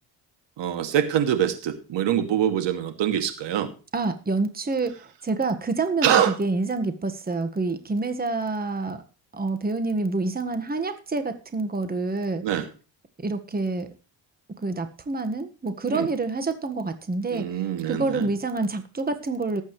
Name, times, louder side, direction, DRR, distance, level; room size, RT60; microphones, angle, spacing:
voice 1, 0.6-3.7 6.0-6.4 12.4-12.7 15.9-16.1 17.3-18.3, right 10 dB, 70° right, 7 dB, 2.4 m, -24 dB
voice 2, 3.9-9.0 9.3-12.4 13.2-13.9 14.6-17.5 17.8-19.6, right 3 dB, 20° right, 8 dB, 1.6 m, -27 dB
19.0 x 8.2 x 3.2 m, 0.35 s
supercardioid pair, 80°, 45 cm